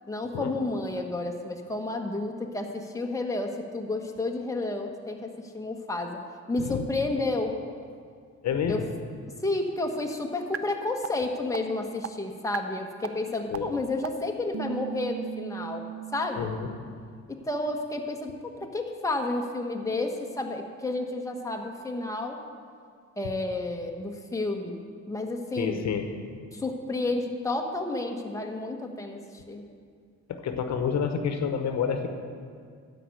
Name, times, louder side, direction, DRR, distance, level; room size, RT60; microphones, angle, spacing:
voice 1, 0.1-6.2 6.5-7.5 8.7-8.8 9.4-15.8 16.1-16.5 17.3-22.4 23.2-25.9 26.5-29.6, left 2 dB, 10° left, 2 dB, 1.1 m, -31 dB
voice 2, 8.4-8.9 13.5-13.7 16.4-16.7 25.6-26.1 30.3-32.1, left 7 dB, 65° left, 6 dB, 1.0 m, -28 dB
sound 1, 10.5-10.6 11.0-11.1 11.5-11.6 12.0-12.1 12.5-12.6 13.0-13.1 13.5-13.6 14.0-14.1 14.5-16.3, right 11 dB, 50° right, 0.6 m, -35 dB
12.5 x 5.3 x 7.8 m, 2.1 s
cardioid pair, 90°, 30 cm